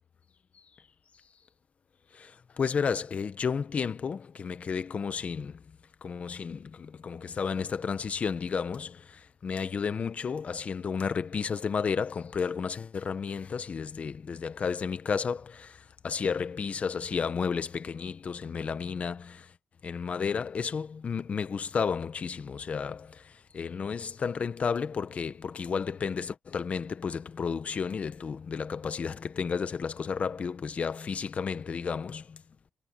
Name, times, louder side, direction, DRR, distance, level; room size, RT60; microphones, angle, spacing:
voice 1, 2.1-19.5 19.8-32.4, left 6 dB, 40° left, 1.1 m, -32 dB
wide cardioid pair, 135°, 3 cm